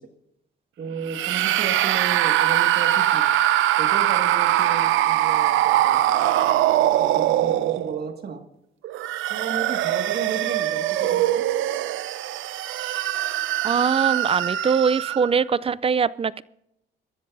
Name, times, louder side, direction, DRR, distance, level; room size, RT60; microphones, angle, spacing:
voice 1, 0.8-3.3 3.8-6.0 6.8-8.4 9.3-11.4, right 5 dB, 55° right, 5 dB, 2.0 m, -34 dB
sound 1, 1.1-8.1 8.8-15.4, right 13 dB, 85° right, 0.6 m, -22 dB
voice 2, 13.6-16.4, right 6 dB, 30° right, 19 dB, 0.4 m, -22 dB
25.0 x 13.5 x 2.7 m, 0.82 s
cardioid pair, 90°, 20 cm